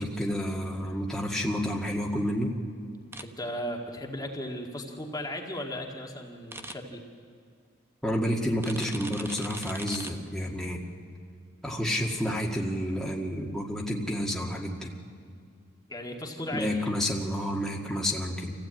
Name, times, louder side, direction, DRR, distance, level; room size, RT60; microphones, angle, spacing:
voice 1, 0.0-2.5 8.0-10.8 11.6-14.9 16.5-18.5, equal, 5° left, -2 dB, 1.9 m, -30 dB
sound 1, 3.1-3.2 6.5-6.7 8.6-10.1, right 2 dB, 15° right, 1.0 m, -40 dB
voice 2, 3.2-7.0 15.9-16.7, left 1 dB, 20° left, 1 dB, 1.9 m, -36 dB
26.5 x 15.5 x 9.0 m, 2.2 s
head